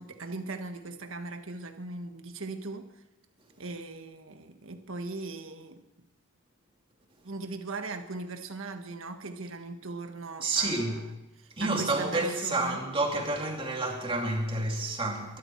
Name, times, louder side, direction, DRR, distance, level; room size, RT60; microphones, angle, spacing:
voice 1, 0.0-3.0 3.6-5.8 7.2-11.0 11.4-12.8, right 3 dB, 65° right, 1.6 m, -39 dB
voice 2, 10.4-11.0 11.6-15.4, right 2 dB, 25° right, 2.7 m, -29 dB
22.0 x 13.0 x 4.6 m
head